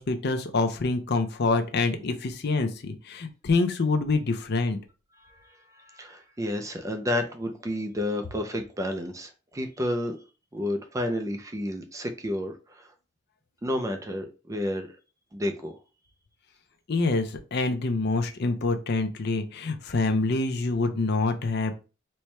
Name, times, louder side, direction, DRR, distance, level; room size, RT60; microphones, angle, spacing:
voice 1, 0.0-4.8 16.9-21.8, left 3 dB, 55° left, 0.6 m, -26 dB
voice 2, 5.2-10.2 10.5-12.9 13.6-14.9 15.3-15.8, left 1 dB, 15° right, 0.4 m, -31 dB
4.3 x 2.2 x 3.2 m
head